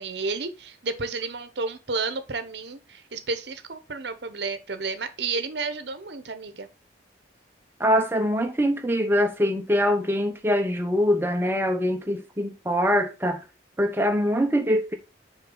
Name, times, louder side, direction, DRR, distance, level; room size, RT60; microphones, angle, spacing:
voice 1, 0.0-6.7, right 4 dB, 65° right, 0.9 m, -31 dB
voice 2, 7.8-13.4 13.8-15.0, equal, 10° right, 0.9 m, -23 dB
6.6 x 4.5 x 3.9 m
head